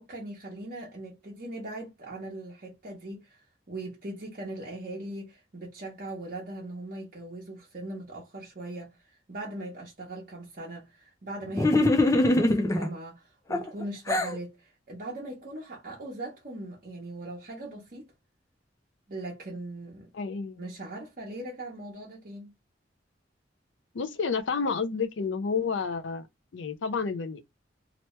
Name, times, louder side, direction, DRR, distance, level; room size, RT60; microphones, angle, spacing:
voice 1, 0.0-18.1 19.1-20.1 20.6-22.5, right 1 dB, 50° right, 1.0 m, -40 dB
sound 1, 11.5-12.9 13.5-14.4, left 2 dB, 15° left, 0.4 m, -23 dB
voice 2, 20.1-20.6 23.9-26.3 26.5-27.4, left 5 dB, 80° left, 0.5 m, -30 dB
2.9 x 2.1 x 3.0 m
head